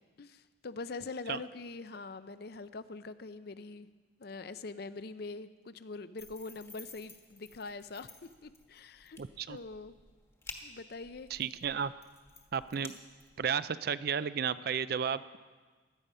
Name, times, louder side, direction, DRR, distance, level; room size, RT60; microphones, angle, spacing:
voice 1, 0.0-3.9 4.2-9.2 9.5-10.0 10.6-11.3, left 3 dB, 55° left, 13 dB, 0.5 m, -43 dB
sound 1, 6.2-13.6, left 3 dB, 15° left, 1.2 m, -53 dB
voice 2, 9.2-9.6 11.3-11.9 12.5-13.0 13.4-15.2, right 7 dB, 55° right, 15 dB, 0.4 m, -33 dB
16.5 x 12.0 x 5.5 m, 1.4 s
head